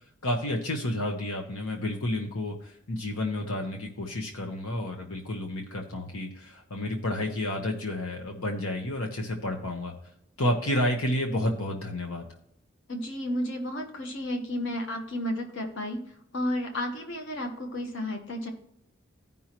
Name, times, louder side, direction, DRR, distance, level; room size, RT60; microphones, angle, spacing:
voice 1, 0.2-9.9 10.4-12.3, left 1 dB, 90° left, 2 dB, 1.1 m, -30 dB
voice 2, 12.9-16.0 16.3-18.5, left 1 dB, 60° left, 3 dB, 1.2 m, -32 dB
14.5 x 5.5 x 3.0 m, 0.71 s
head